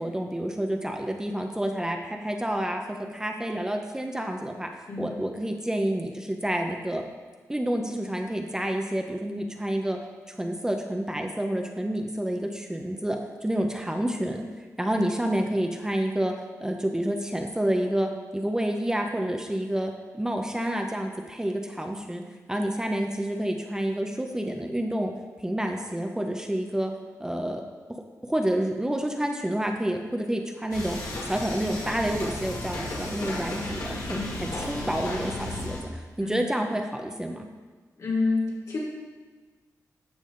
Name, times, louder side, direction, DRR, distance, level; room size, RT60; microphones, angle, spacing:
voice 1, 0.0-2.8 3.1-7.0 7.5-10.0 10.4-14.5 14.8-16.3 16.6-22.2 22.5-25.1 25.4-26.9 27.2-27.6 27.9-37.5, right 1 dB, 10° right, 3 dB, 0.8 m, -29 dB
sound 1, 30.7-35.8, left 1 dB, 85° left, 2.6 m, -34 dB
voice 2, 38.0-38.8, left 3 dB, 65° left, -4 dB, 3.1 m, -29 dB
12.0 x 7.0 x 3.9 m, 1.4 s
wide cardioid pair, 95°, 6 cm